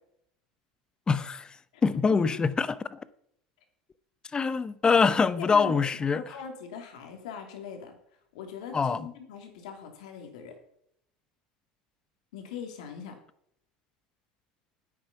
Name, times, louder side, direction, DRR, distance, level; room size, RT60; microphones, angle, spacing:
voice 1, 1.1-1.5 1.8-3.0 4.3-6.2 8.7-9.1, left 5 dB, 25° left, 0.7 m, -24 dB
voice 2, 5.4-5.9 6.1-7.9 8.3-10.5 12.3-13.2, left 7 dB, 80° left, 2.7 m, -41 dB
9.7 x 8.5 x 5.9 m
hypercardioid pair, 95°, 4 cm